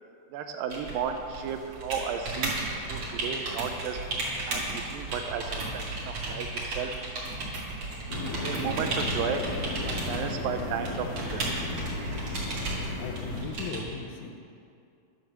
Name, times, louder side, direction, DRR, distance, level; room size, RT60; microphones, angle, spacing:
voice 1, 0.3-2.6 2.9-4.0 4.5-6.9 8.4-9.5 9.9-11.4, right 7 dB, 80° right, 6 dB, 2.3 m, -34 dB
sound 1, 0.7-13.8, right 2 dB, 50° right, 3.0 m, -34 dB
sound 2, 8.1-13.4, left 2 dB, 55° left, 1.7 m, -35 dB
voice 2, 12.7-14.4, left 4 dB, 70° left, 3 dB, 1.9 m, -38 dB
11.5 x 7.4 x 6.6 m, 2.4 s
omnidirectional pair, 4.2 m